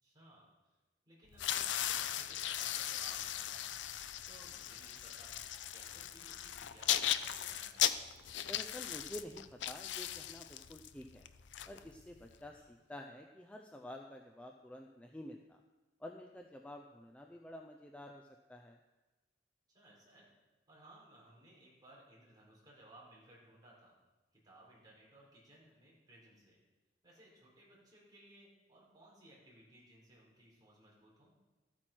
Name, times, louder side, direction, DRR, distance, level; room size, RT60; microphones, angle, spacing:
voice 1, 0.0-0.5 1.1-3.7 4.3-5.4 5.7-7.8 12.5-12.7 19.7-20.3 20.7-24.0 24.4-26.6 27.0-31.3, right 1 dB, 25° right, -5 dB, 4.5 m, -60 dB
sound 1, 1.3-12.3, left 11 dB, 90° left, 0.5 m, -38 dB
voice 2, 8.4-11.3 11.7-15.6 16.0-18.8, left 1 dB, 5° left, 2 dB, 0.5 m, -50 dB
13.5 x 8.8 x 4.5 m, 1.1 s
head